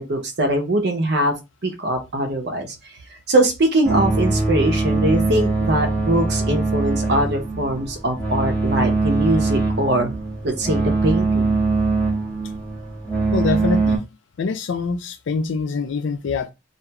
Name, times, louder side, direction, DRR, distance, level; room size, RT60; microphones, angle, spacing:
voice 1, 0.0-1.3 1.6-2.7 3.3-10.1 10.4-11.6, right 1 dB, 55° right, 0.6 m, -22 dB
sound 1, 3.8-14.0, right 3 dB, 10° left, 0.6 m, -22 dB
voice 2, 13.3-14.0 14.4-16.5, left 4 dB, 65° left, 0.4 m, -24 dB
2.4 x 2.2 x 2.8 m
head